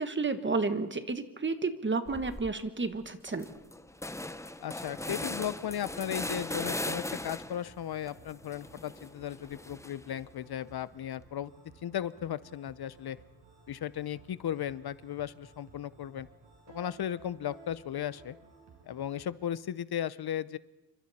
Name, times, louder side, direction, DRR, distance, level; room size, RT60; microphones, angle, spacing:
voice 1, 0.0-3.5, right 3 dB, 30° right, 10 dB, 1.4 m, -31 dB
sound 1, 2.1-2.5 2.9-3.0 3.3-7.7 8.1-10.2, left 1 dB, 5° left, 0.7 m, -38 dB
voice 2, 4.6-11.5 11.8-13.2 13.7-16.3 16.7-18.4 18.9-20.6, left 10 dB, 65° left, 17 dB, 0.7 m, -36 dB
sound 2, 4.8-19.3, right 3 dB, 80° right, 5.7 m, -57 dB
28.0 x 25.0 x 4.3 m, 0.99 s
wide cardioid pair, 125°, 40 cm